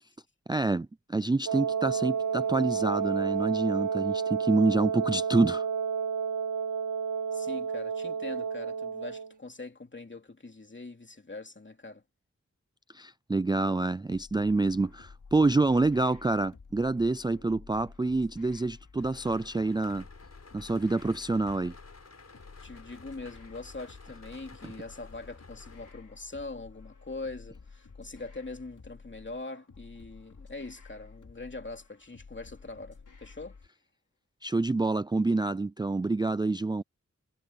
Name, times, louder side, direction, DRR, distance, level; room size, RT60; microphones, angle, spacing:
voice 1, 0.5-5.7 12.9-20.0 20.5-21.7 34.4-36.8, right 3 dB, 15° right, 0.4 m, -27 dB
Wind instrument woodwind instrument, 1.5-9.3, right 7 dB, 75° right, 1.8 m, -30 dB
voice 2, 7.3-12.0 22.6-33.6, left 3 dB, 40° left, 2.8 m, -42 dB
sound 1, 14.1-33.7, left 4 dB, 80° left, 4.5 m, -52 dB
sound 2, 19.0-25.9, left 3 dB, 55° left, 5.0 m, -53 dB
wide cardioid pair, 70°, 30 cm